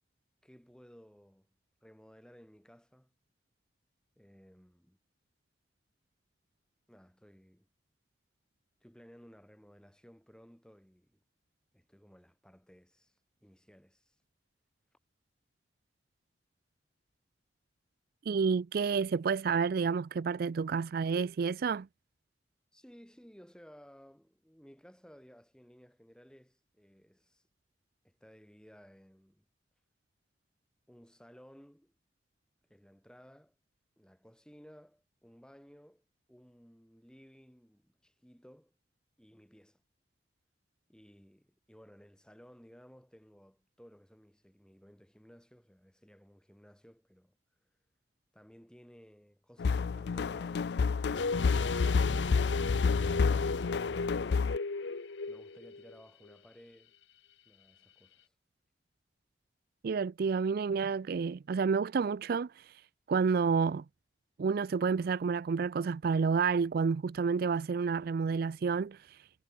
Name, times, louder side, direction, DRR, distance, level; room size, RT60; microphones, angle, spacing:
voice 1, 0.4-1.5 1.8-3.1 4.2-5.0 6.9-7.7 8.8-11.2 11.7-14.2 22.7-27.4 28.0-29.5 30.9-32.0 32.7-33.6 34.0-38.7 39.2-39.8 40.9-47.4 48.3-54.6 55.3-56.9 57.5-58.3, equal, 5° left, 6.9 m, -58 dB
voice 2, 18.3-21.9 59.8-62.7 63.1-63.8 64.4-69.2, right 5 dB, 55° right, 0.4 m, -30 dB
sound 1, 49.6-54.6, left 5 dB, 65° left, 0.4 m, -29 dB
sound 2, 51.1-56.0 56.3-56.4, left 3 dB, 85° left, 0.9 m, -35 dB
head